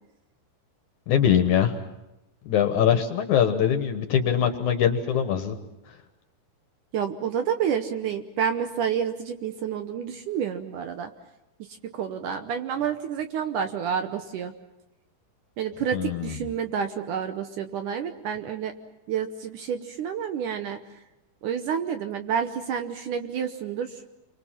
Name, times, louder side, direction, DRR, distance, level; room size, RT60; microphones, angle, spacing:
voice 1, 1.1-1.8 2.5-5.6 15.9-16.4, left 9 dB, 65° left, 7 dB, 2.3 m, -22 dB
voice 2, 6.9-11.1 11.8-14.5 15.6-18.7 19.1-20.8 21.4-24.0, right 8 dB, 70° right, 7 dB, 2.1 m, -29 dB
29.5 x 24.0 x 5.8 m, 0.96 s
omnidirectional pair, 4.4 m